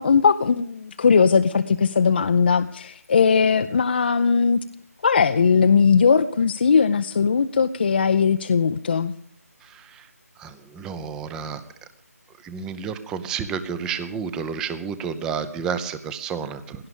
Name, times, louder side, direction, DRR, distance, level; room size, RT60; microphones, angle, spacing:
voice 1, 0.0-4.6 5.0-9.1, left 5 dB, 40° left, 9 dB, 0.5 m, -19 dB
voice 2, 9.6-10.1 10.4-11.6 12.4-16.9, right 6 dB, 5° right, 12 dB, 0.6 m, -31 dB
17.5 x 11.5 x 7.0 m, 0.63 s
figure-of-eight pair, 155°, 9 cm